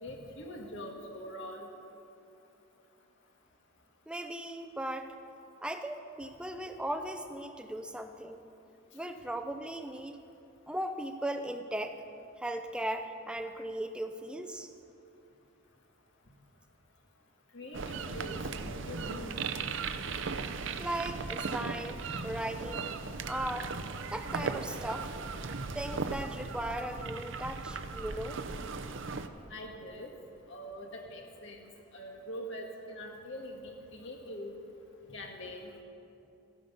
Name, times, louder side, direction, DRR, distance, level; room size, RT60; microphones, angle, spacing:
voice 1, 0.0-1.7 17.5-19.4 29.5-30.1 30.5-31.7 31.9-34.5 35.1-35.7, equal, 60° left, 1 dB, 1.8 m, -43 dB
voice 2, 4.1-5.1 5.6-8.4 8.9-10.2 10.7-12.0 12.4-14.7 20.8-23.0 23.3-23.7 24.1-25.1 25.7-28.4, right 1 dB, 5° right, 7 dB, 0.5 m, -37 dB
sound 1, 17.7-29.3, right 4 dB, 60° right, 0.6 m, -37 dB
14.0 x 11.5 x 5.5 m, 2.8 s
head